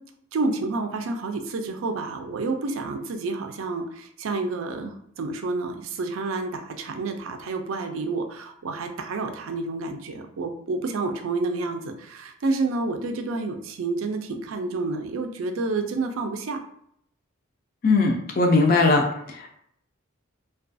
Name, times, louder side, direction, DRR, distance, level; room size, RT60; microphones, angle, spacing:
voice 1, 0.3-16.6, right 3 dB, 80° right, 5 dB, 0.4 m, -29 dB
voice 2, 17.8-19.0 19.4-19.6, left 3 dB, 45° left, 2 dB, 0.3 m, -19 dB
2.3 x 2.3 x 2.5 m, 0.69 s
head